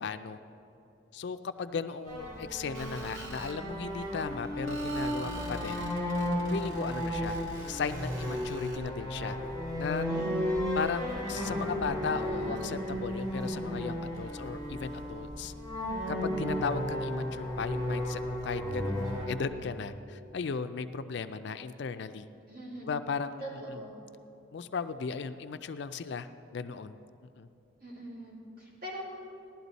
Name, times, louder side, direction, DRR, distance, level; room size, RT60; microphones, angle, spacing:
voice 1, 0.0-0.4 1.1-5.8 6.5-7.4 7.7-9.4 9.8-10.1 10.7-15.5 16.1-22.3 22.9-23.4 23.7-23.8 24.5-27.0 27.4-27.5, left 5 dB, 60° left, 10 dB, 0.4 m, -36 dB
sound 1, 2.1-19.3, equal, 20° right, 2.7 m, -34 dB
Screech, 2.7-3.6 4.7-8.8, right 1 dB, 85° right, 2.0 m, -48 dB
voice 2, 10.1-10.8 22.5-23.0 23.4-24.0 27.8-29.0, right 1 dB, 50° right, -6 dB, 3.3 m, -43 dB
16.0 x 11.5 x 4.1 m, 2.9 s
head